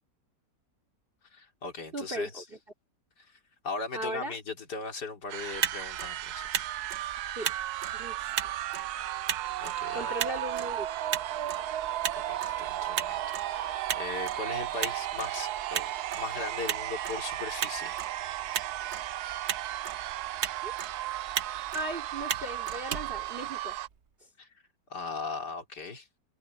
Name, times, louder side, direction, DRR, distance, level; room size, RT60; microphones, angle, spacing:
voice 1, 1.3-2.4 3.6-6.7 8.2-8.3 9.6-10.1 12.2-13.2 13.5-15.9 16.2-18.1 24.4-24.5 24.9-26.1, left 4 dB, 70° left, 3.6 m, -38 dB
voice 2, 1.9-2.4 3.9-4.4 7.4-7.5 7.9-8.6 9.9-10.9 20.6-20.7 21.7-23.8, right 1 dB, 30° right, 3.3 m, -37 dB
sound 1, 5.3-23.9, right 13 dB, 70° right, 1.1 m, -35 dB
Motor vehicle (road), 5.4-24.0, right 8 dB, 50° right, 1.0 m, -38 dB
omnidirectional pair, 1.8 m